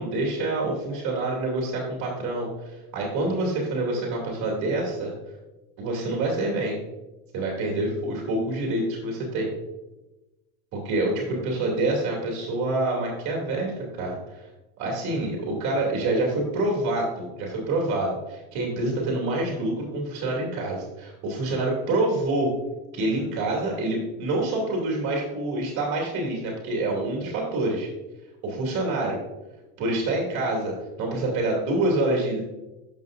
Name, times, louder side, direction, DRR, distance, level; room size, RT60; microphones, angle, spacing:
voice 1, 0.0-5.1 5.8-6.8 7.3-9.5 10.7-14.5 14.8-22.5 22.9-27.9 28.4-29.2 29.8-32.4, right 2 dB, 45° right, -2 dB, 2.7 m, -27 dB
11.0 x 6.3 x 2.6 m, 1.0 s
supercardioid pair, 110°, 41 cm